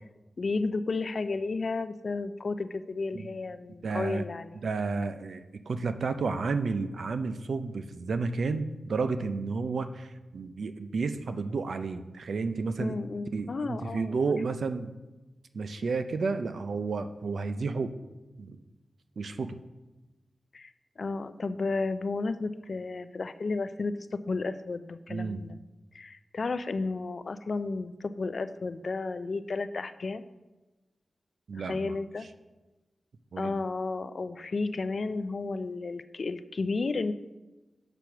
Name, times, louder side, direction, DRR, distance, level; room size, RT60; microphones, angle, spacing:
voice 1, 0.4-4.6 12.8-14.4 20.5-20.7 21.0-25.6 25.9-30.2 31.5-32.3 33.4-37.1, left 3 dB, 55° left, 12 dB, 0.4 m, -33 dB
voice 2, 3.8-4.2 4.6-12.9 13.3-14.9 15.5-18.0 18.4-18.6 19.2-19.6 25.1-25.4 31.5-32.0 33.3-33.5, right 4 dB, 80° right, 10 dB, 0.5 m, -31 dB
6.9 x 6.1 x 5.8 m, 1.1 s
wide cardioid pair, 125°, 0 cm